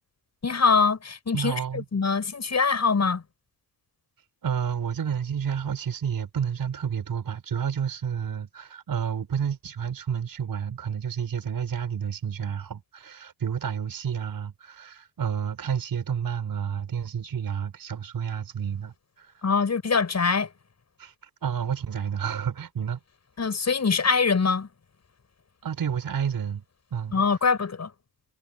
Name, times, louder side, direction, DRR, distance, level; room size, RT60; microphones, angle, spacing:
voice 1, 0.4-3.2 19.4-20.5 23.4-24.7 27.1-27.9, left 5 dB, 35° left, 7.6 m, -23 dB
voice 2, 1.3-1.8 4.4-19.4 21.0-21.1 21.4-23.0 25.6-26.6 26.9-27.2, right 7 dB, 50° right, 5.4 m, -30 dB
supercardioid pair, 65°, 45 cm